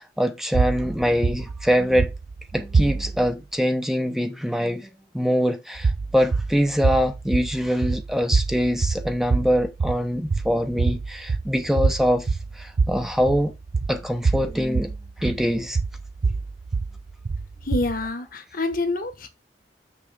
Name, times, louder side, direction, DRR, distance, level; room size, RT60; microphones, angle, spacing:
voice 1, 0.0-2.1 2.5-4.9 5.1-12.3 12.6-13.5 13.9-14.9 15.2-15.8, equal, ahead, 0.9 m, -23 dB
sound 1, 0.5-3.3 5.8-18.1, right 4 dB, 60° right, 0.5 m, -26 dB
voice 2, 17.7-19.3, left 2 dB, 55° left, 1.4 m, -27 dB
6.9 x 6.4 x 3.5 m
head